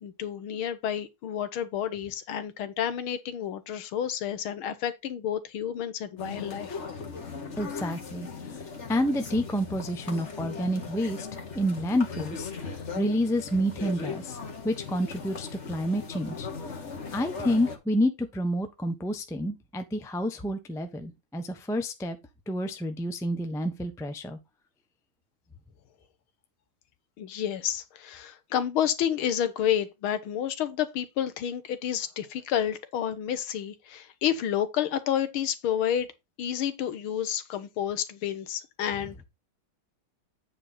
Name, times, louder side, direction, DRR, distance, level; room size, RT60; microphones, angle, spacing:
voice 1, 0.0-6.8 27.2-36.1 36.4-39.2, left 10 dB, 75° left, 1.8 m, -30 dB
sound 1, 6.2-17.8, left 4 dB, 35° left, 1.7 m, -38 dB
voice 2, 7.6-8.3 8.9-14.4 14.6-16.5 17.1-22.2 22.5-24.4, equal, 5° left, 0.5 m, -29 dB
8.8 x 4.9 x 4.0 m
omnidirectional pair, 2.3 m